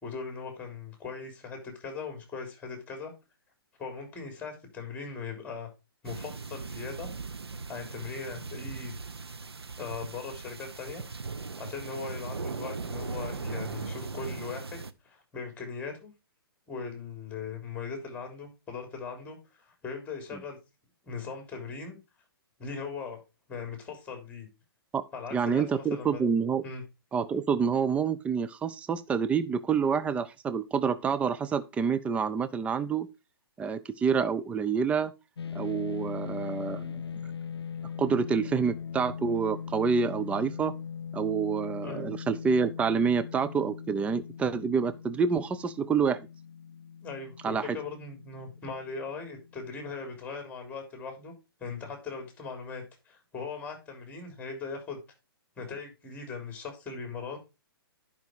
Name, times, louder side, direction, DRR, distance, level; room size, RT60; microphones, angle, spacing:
voice 1, 0.0-3.1 3.8-5.7 6.0-7.1 7.7-9.0 9.8-11.0 11.6-16.1 16.7-20.6 21.0-22.0 22.6-23.2 23.5-24.5 25.1-26.2 26.6-26.8 41.8-42.1 47.0-51.3 51.6-55.0 55.6-57.4, left 5 dB, 10° left, 3.7 m, -39 dB
sound 1, 6.0-14.9, right 4 dB, 90° right, 0.9 m, -39 dB
voice 2, 25.3-26.6 27.1-33.1 33.6-35.1 35.5-37.0 38.0-40.7 41.1-46.2 47.4-47.8, right 6 dB, 10° right, 0.5 m, -27 dB
sound 2, 35.4-49.8, left 7 dB, 90° left, 0.5 m, -40 dB
10.5 x 5.3 x 4.6 m
hypercardioid pair, 130°, 13 cm